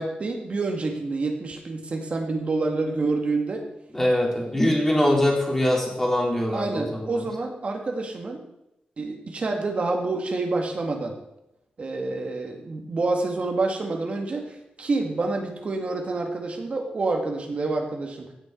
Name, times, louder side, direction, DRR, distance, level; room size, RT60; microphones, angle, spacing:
voice 1, 0.0-3.7 6.5-8.4 9.0-11.1 11.8-18.3, right 3 dB, 45° right, 2 dB, 2.0 m, -28 dB
voice 2, 3.9-7.2, left 1 dB, 10° left, -1 dB, 3.0 m, -23 dB
16.5 x 6.6 x 4.6 m, 0.87 s
wide cardioid pair, 140°, 3 cm